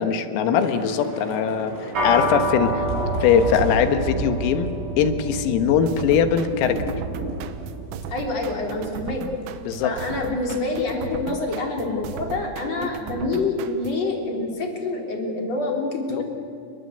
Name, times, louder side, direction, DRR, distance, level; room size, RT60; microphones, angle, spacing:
voice 1, 0.0-1.7 2.0-2.8 3.2-6.8 9.7-9.9 11.9-12.0 16.1-16.2, left 7 dB, 90° left, 8 dB, 4.2 m, -21 dB
Thunder / Rain, 0.6-9.1 9.4-9.6 10.0-10.2, right 1 dB, 15° right, 6.6 m, -33 dB
sound 1, 1.9-11.5, right 1 dB, 40° right, 5.1 m, -31 dB
sound 2, 5.9-14.1, right 9 dB, 85° right, 3.8 m, -37 dB
voice 2, 8.1-9.2 9.8-16.2, left 3 dB, 35° left, 1 dB, 4.2 m, -27 dB
29.5 x 21.5 x 8.2 m, 2.5 s
omnidirectional pair, 5.9 m